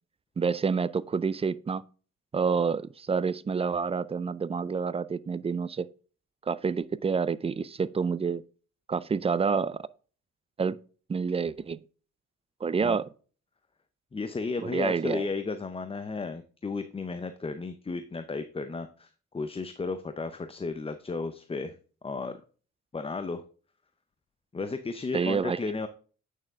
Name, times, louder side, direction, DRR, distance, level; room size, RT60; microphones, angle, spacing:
voice 1, 0.4-1.8 2.3-5.9 6.5-8.4 8.9-9.8 10.6-10.8 11.1-11.8 12.6-13.1 14.6-15.3 25.1-25.6, right 5 dB, 20° right, 0.4 m, -28 dB
voice 2, 14.1-21.8 22.0-22.4 22.9-23.4 24.5-25.9, left 4 dB, 20° left, 0.6 m, -34 dB
8.9 x 6.4 x 3.6 m
cardioid pair, 90°, 30 cm